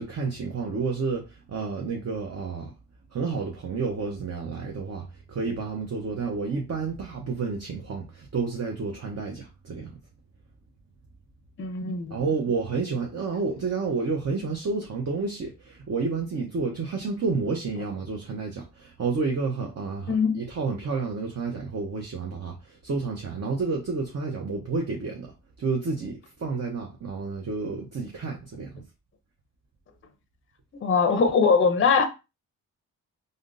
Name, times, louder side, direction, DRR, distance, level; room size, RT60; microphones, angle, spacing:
voice 1, 0.0-2.7 3.1-10.0 12.1-28.8, right 4 dB, 45° right, 0.8 m, -30 dB
voice 2, 11.6-12.2 20.1-20.4 30.8-32.1, left 5 dB, 35° left, 0.6 m, -21 dB
3.5 x 2.6 x 2.5 m
cardioid pair, 70°, 36 cm